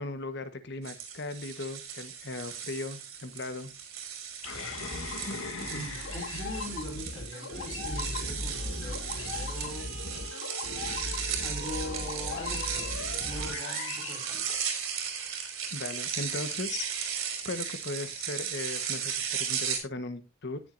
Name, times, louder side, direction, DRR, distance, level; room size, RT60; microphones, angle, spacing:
voice 1, 0.0-3.7 15.7-20.6, left 2 dB, 55° left, 10 dB, 1.3 m, -38 dB
sound 1, 0.8-19.8, right 7 dB, 90° right, 3.7 m, -36 dB
sound 2, 4.4-15.1, left 3 dB, 75° left, 2.5 m, -37 dB
voice 2, 5.7-9.9 11.4-12.9 13.2-14.5, equal, 25° left, 0 dB, 5.1 m, -41 dB
17.5 x 7.4 x 2.6 m, 0.25 s
head